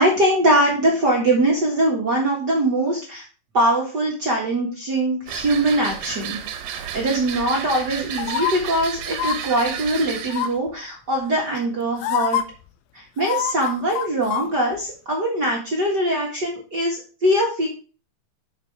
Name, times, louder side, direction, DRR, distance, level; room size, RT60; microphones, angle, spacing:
voice 1, 0.0-3.2 3.5-6.4 6.7-12.4 12.9-17.7, right 1 dB, 50° right, -3 dB, 1.2 m, -22 dB
sound 1, 5.3-10.5, right 9 dB, 70° right, 2.9 m, -32 dB
sound 2, 8.2-8.5 9.1-9.4 10.3-10.7 11.6-11.7 12.0-12.4 13.2-14.5 14.8-14.9, left 11 dB, 80° left, 2.5 m, -25 dB
12.5 x 5.0 x 3.4 m, 0.36 s
omnidirectional pair, 4.9 m